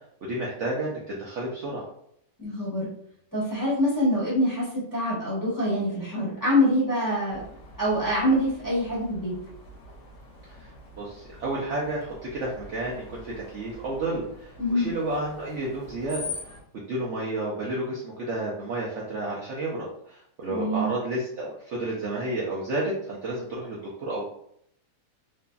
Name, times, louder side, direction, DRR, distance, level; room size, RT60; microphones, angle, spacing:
voice 1, 0.2-1.8 10.5-10.7 11.0-16.2 16.7-24.3, right 2 dB, 65° right, -4 dB, 0.7 m, -31 dB
voice 2, 2.4-2.9 3.3-7.4 7.8-9.3 14.6-14.9 20.5-20.9, equal, 15° left, -10 dB, 0.9 m, -25 dB
Screech, 7.3-16.6, left 3 dB, 55° left, 0.9 m, -44 dB
2.8 x 2.6 x 2.2 m, 0.70 s
omnidirectional pair, 1.7 m